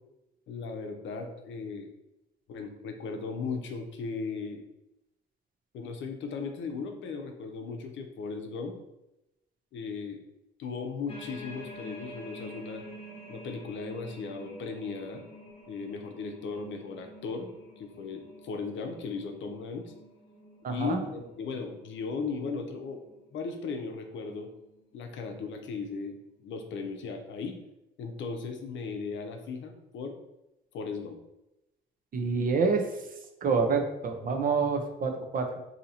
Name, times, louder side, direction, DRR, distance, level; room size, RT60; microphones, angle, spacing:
voice 1, 0.5-1.9 2.5-4.6 5.7-8.8 9.7-10.2 10.6-12.8 13.3-15.2 15.7-19.9 20.7-23.0 23.3-24.5 24.9-26.2 26.4-27.6 28.0-30.1 30.7-31.2, left 4 dB, 70° left, 5 dB, 0.6 m, -37 dB
sound 1, 11.1-23.4 23.9-24.2 24.6-25.4 26.0-26.1, equal, 30° left, 0.8 m, -48 dB
voice 2, 20.6-21.0 32.1-32.9 33.4-35.4, right 4 dB, 45° right, 4 dB, 0.6 m, -27 dB
2.8 x 2.7 x 4.1 m, 0.92 s
cardioid pair, 90°, 20 cm